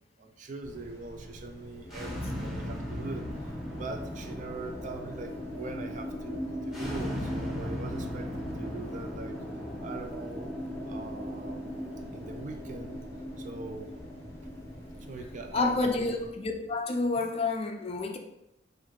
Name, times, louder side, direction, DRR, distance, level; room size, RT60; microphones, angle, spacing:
voice 1, 0.0-3.3 3.8-9.4 9.8-10.5 10.9-11.6 12.1-13.0 13.4-13.9 15.0-16.1 17.2-17.3, right 3 dB, 40° right, 6 dB, 0.4 m, -42 dB
sound 1, 0.6-16.3, left 1 dB, 15° left, 0.8 m, -49 dB
sound 2, 1.8-16.8, equal, ahead, 1.4 m, -38 dB
voice 2, 15.5-18.2, left 3 dB, 30° left, 4 dB, 0.4 m, -29 dB
4.0 x 2.6 x 4.5 m, 0.84 s
head